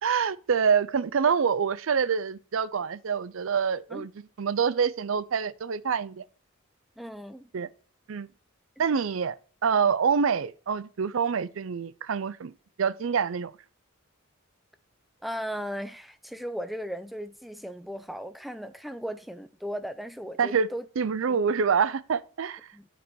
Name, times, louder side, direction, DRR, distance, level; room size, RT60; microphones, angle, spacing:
voice 1, 0.0-4.1 4.4-6.2 7.5-7.7 8.1-8.3 8.8-9.4 9.6-12.5 12.8-13.5 20.4-20.7 21.0-22.6, right 6 dB, 70° right, 0.5 m, -26 dB
voice 2, 7.0-7.5 15.2-20.9 21.2-21.4 22.7-22.9, equal, ahead, 0.5 m, -37 dB
8.9 x 5.3 x 4.6 m
head